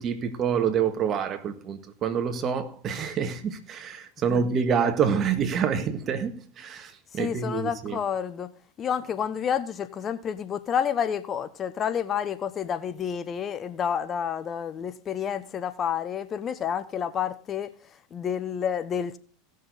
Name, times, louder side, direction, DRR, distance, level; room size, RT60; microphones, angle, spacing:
voice 1, 0.0-8.0, right 7 dB, 40° right, 1.6 m, -27 dB
voice 2, 7.1-8.5 8.8-19.2, left 8 dB, 35° left, 0.8 m, -29 dB
17.0 x 6.6 x 4.0 m
hypercardioid pair, 90°, 0 cm